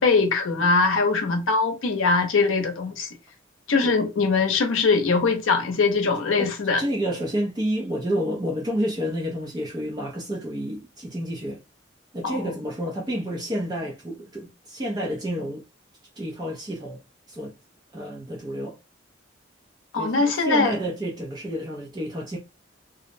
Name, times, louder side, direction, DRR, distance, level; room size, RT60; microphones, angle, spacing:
voice 1, 0.0-3.1 3.7-6.8 12.2-12.5 19.9-20.7, left 4 dB, 90° left, 0.6 m, -22 dB
voice 2, 6.4-11.6 12.1-15.6 16.2-17.0 17.3-17.5 17.9-18.8 20.0-22.4, equal, 20° right, 0.3 m, -30 dB
2.5 x 2.0 x 2.5 m
head